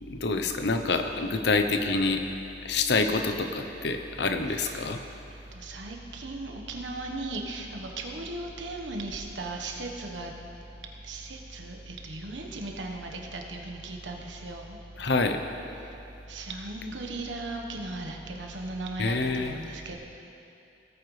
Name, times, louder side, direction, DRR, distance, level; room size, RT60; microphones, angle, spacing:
voice 1, 0.0-2.2 2.6-5.0 15.0-15.4 19.0-19.5, left 3 dB, 65° left, 6 dB, 0.7 m, -27 dB
voice 2, 4.5-4.9 5.5-10.3 11.1-14.8 16.3-20.0, right 2 dB, 90° right, 1 dB, 1.2 m, -37 dB
17.5 x 9.0 x 3.3 m, 2.8 s
head